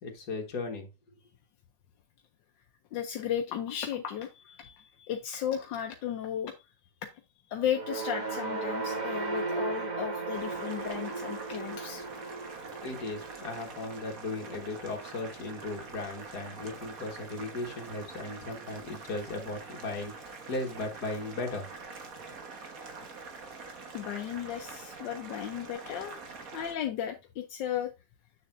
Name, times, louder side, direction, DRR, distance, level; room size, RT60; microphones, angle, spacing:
voice 1, 0.0-0.9 12.8-21.7, left 2 dB, 60° left, 2.1 m, -37 dB
voice 2, 2.9-6.5 7.5-12.1 23.9-26.2 26.5-27.9, left 9 dB, 85° left, 1.4 m, -35 dB
sound 1, 7.6-16.0, right 3 dB, 30° right, 1.0 m, -37 dB
Boiling, 10.3-26.7, right 4 dB, 50° right, 1.7 m, -45 dB
7.9 x 6.9 x 2.5 m
omnidirectional pair, 1.9 m